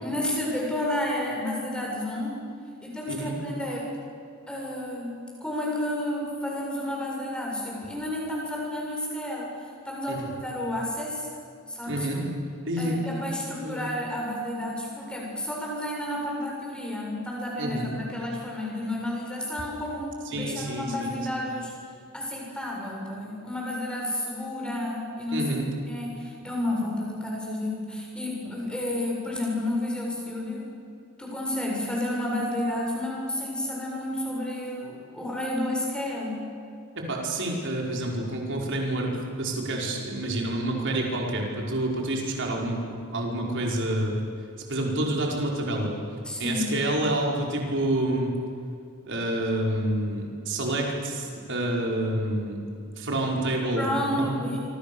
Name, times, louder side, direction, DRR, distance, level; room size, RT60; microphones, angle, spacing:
voice 1, 0.0-2.3 2.8-3.9 4.5-9.6 9.8-11.3 11.7-12.1 12.8-21.7 22.1-30.7 31.2-36.4 46.2-46.7 53.8-54.6, left 1 dB, 5° left, -3 dB, 7.5 m, -31 dB
voice 2, 11.9-12.3 12.7-13.0 13.6-13.8 17.6-17.9 20.3-21.2 25.3-25.7 37.0-39.1 39.4-44.2 44.7-45.9 46.4-48.3 49.0-52.6 53.0-54.4, right 1 dB, 55° right, -1 dB, 5.3 m, -28 dB
26.5 x 25.5 x 7.2 m, 2.4 s
head